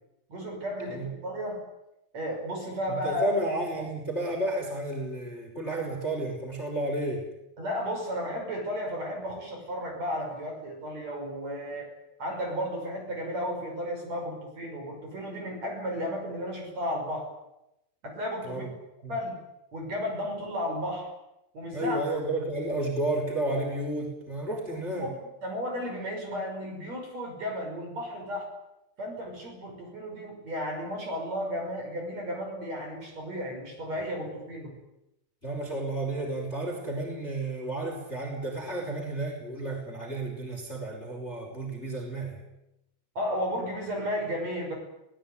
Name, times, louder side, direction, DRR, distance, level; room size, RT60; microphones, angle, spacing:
voice 1, 0.3-1.6 2.1-3.3 7.6-11.9 12.2-17.3 18.0-18.7 19.1-19.4 19.7-21.1 21.5-22.0 24.9-25.1 25.4-28.5 29.0-34.7 43.1-44.8, equal, 40° right, 2 dB, 6.7 m, -33 dB
voice 2, 2.9-7.3 18.4-18.7 19.0-19.1 21.7-25.1 35.4-42.4, right 1 dB, 15° left, 2 dB, 4.9 m, -32 dB
23.5 x 18.5 x 9.6 m, 0.88 s
omnidirectional pair, 5.0 m